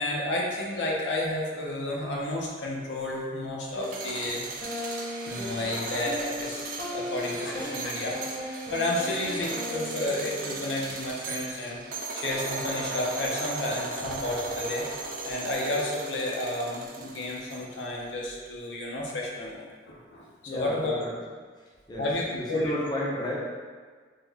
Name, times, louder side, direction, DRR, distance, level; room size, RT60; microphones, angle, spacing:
voice 1, 0.0-4.4 5.3-14.9 15.2-20.2 20.5-20.9 22.0-22.7, left 1 dB, 80° left, -2 dB, 0.6 m, -31 dB
sound 1, 3.7-17.9, right 3 dB, 50° right, 0.4 m, -37 dB
sound 2, 3.8-3.9 4.6-10.9, left 1 dB, 50° left, 0.8 m, -37 dB
voice 2, 20.5-21.2 21.9-23.4, left 1 dB, 25° left, -5 dB, 0.5 m, -32 dB
3.5 x 2.1 x 3.3 m, 1.5 s
head